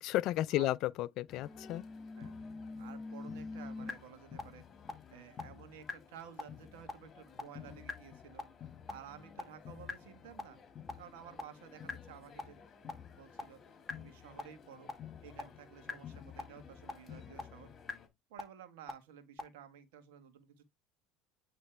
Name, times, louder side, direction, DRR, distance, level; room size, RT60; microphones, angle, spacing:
voice 1, 0.0-1.8, left 15 dB, 60° left, 0.4 m, -33 dB
sound 1, 1.3-18.1, left 8 dB, 35° left, 2.1 m, -53 dB
sound 2, 1.5-3.9 4.4-4.5 4.9-5.0 5.4-5.5 5.9-6.0 6.4-6.5 6.9-7.0 7.4-7.5 7.9-8.0 8.4-8.5 8.9-9.0 9.4-9.5 9.9-10.0 10.4-10.5 10.9-11.0 11.4-11.5 11.9-12.0 12.4-12.5 12.9-13.0 13.4-13.5 13.9-14.0 14.4-14.5 14.9-15.0 15.4-15.5 15.9-16.0 16.4-16.5 16.9-17.0 17.4-17.5 17.9-18.0 18.4-18.5 18.9-19.0 19.4-19.5, left 3 dB, 5° left, 2.0 m, -40 dB
voice 2, 2.8-4.6 5.1-8.4 8.9-10.6 11.0-12.6 13.2-13.6 13.9-14.9 15.2-17.7 18.3-20.6, right 8 dB, 80° right, 1.6 m, -53 dB
9.1 x 3.3 x 3.3 m
hypercardioid pair, 90°, 0 cm